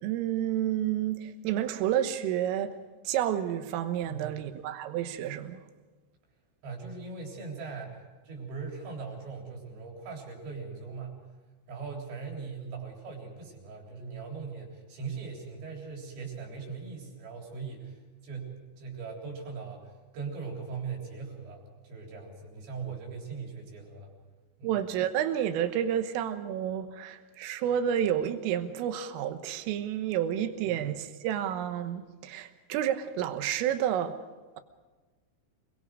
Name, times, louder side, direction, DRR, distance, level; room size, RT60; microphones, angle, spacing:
voice 1, 0.0-2.8 3.1-5.6 24.6-34.2, right 10 dB, 90° right, 3.8 m, -30 dB
voice 2, 6.6-11.1 11.7-18.0 18.2-24.1 24.6-24.7, right 5 dB, 65° right, 5.9 m, -40 dB
27.5 x 22.5 x 4.9 m
omnidirectional pair, 5.7 m